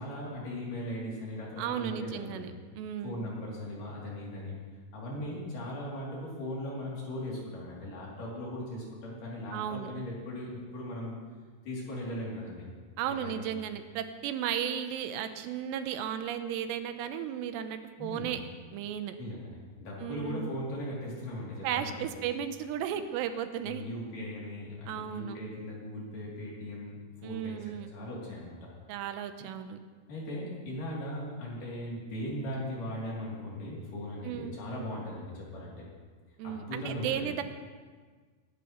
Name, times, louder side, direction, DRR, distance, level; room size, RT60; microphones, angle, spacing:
voice 1, 0.0-2.4 3.0-4.5 4.9-11.2 11.7-12.6 13.0-13.4 18.0-18.3 19.2-22.0 23.6-27.6 27.9-28.7 30.1-35.8 36.4-37.2, left 1 dB, 55° left, -5 dB, 4.3 m, -38 dB
voice 2, 1.6-3.2 9.5-9.9 13.0-18.4 18.7-19.2 20.0-20.5 21.6-23.9 24.9-25.4 27.2-27.9 28.9-29.8 34.2-34.6 36.4-37.4, right 9 dB, 90° right, 9 dB, 2.9 m, -35 dB
22.5 x 11.0 x 3.1 m, 1.5 s
omnidirectional pair, 4.9 m